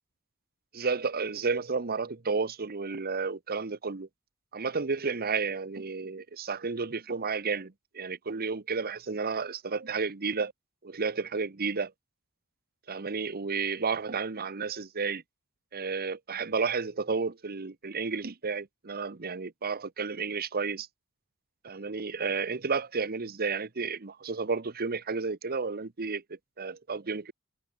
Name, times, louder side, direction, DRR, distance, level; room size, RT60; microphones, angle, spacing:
voice 1, 0.7-4.1 4.5-10.5 10.8-11.9 12.9-15.2 15.7-20.9 21.6-27.3, right 4 dB, 45° right, 1.0 m, -32 dB
head